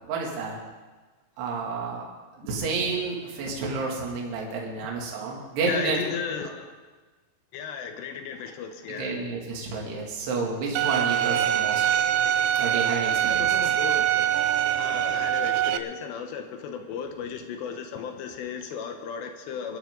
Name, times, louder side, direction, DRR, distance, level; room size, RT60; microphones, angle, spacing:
voice 1, 0.1-0.6 1.4-2.1 2.4-6.0 6.4-6.5 8.9-11.9 12.6-13.7, right 4 dB, 60° right, -2 dB, 4.4 m, -30 dB
voice 2, 5.6-6.7 7.5-9.2 13.3-14.3 14.8-19.8, left 6 dB, 75° left, 6 dB, 2.8 m, -35 dB
Bowed string instrument, 10.8-15.8, right 11 dB, 90° right, 2.5 m, -24 dB
23.5 x 12.5 x 3.9 m, 1.3 s
omnidirectional pair, 5.7 m